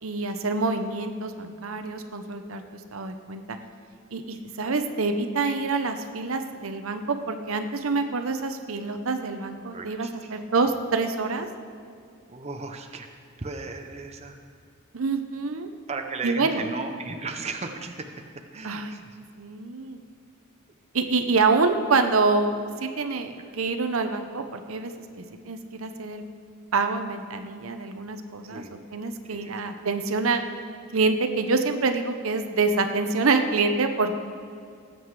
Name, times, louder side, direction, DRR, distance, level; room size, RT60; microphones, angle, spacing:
voice 1, 0.0-2.6 2.9-3.6 4.1-11.5 14.9-15.7 16.2-16.6 18.6-18.9 19.4-20.0 20.9-26.2 26.7-28.6 28.9-30.4 30.9-34.2, right 4 dB, 80° right, 7 dB, 0.8 m, -26 dB
voice 2, 9.7-10.3 12.3-13.1 13.4-14.4 15.9-18.1 18.5-19.2 28.4-28.8 29.2-29.5, right 3 dB, 30° right, 4 dB, 0.8 m, -36 dB
18.5 x 7.8 x 4.8 m, 2.4 s
head